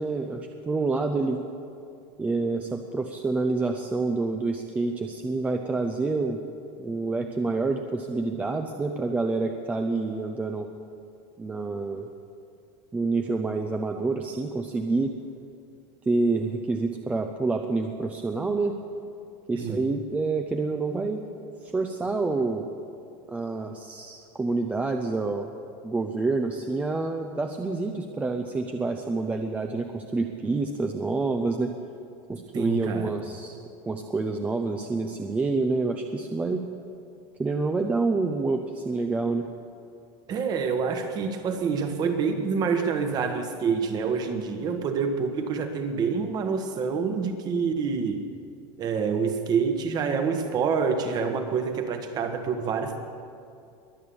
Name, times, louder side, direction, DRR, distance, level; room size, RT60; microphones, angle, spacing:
voice 1, 0.0-1.4 2.2-6.4 6.8-10.7 11.4-12.1 12.9-15.2 16.1-18.8 19.5-21.2 21.6-22.7 23.3-25.5 25.8-31.7 32.3-33.6 33.9-36.7 37.4-39.5, right 3 dB, 10° right, 4 dB, 0.6 m, -27 dB
voice 2, 32.5-33.1 40.3-48.2 48.8-53.0, right 5 dB, 30° right, 7 dB, 1.3 m, -27 dB
22.5 x 8.6 x 7.0 m, 2.5 s
supercardioid pair, 165°, 13 cm